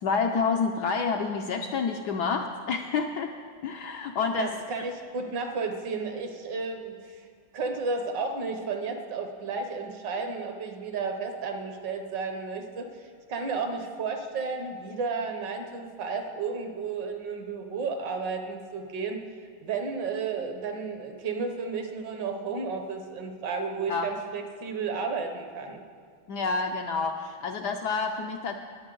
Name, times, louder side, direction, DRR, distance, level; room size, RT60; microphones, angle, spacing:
voice 1, 0.0-3.3 3.6-4.5 23.9-24.1 26.3-28.6, left 5 dB, 75° left, 3 dB, 1.0 m, -28 dB
voice 2, 4.4-7.2 7.5-12.9 13.3-19.2 19.6-25.8, right 4 dB, 65° right, 5 dB, 1.5 m, -32 dB
19.5 x 7.0 x 3.8 m, 2.1 s
omnidirectional pair, 2.2 m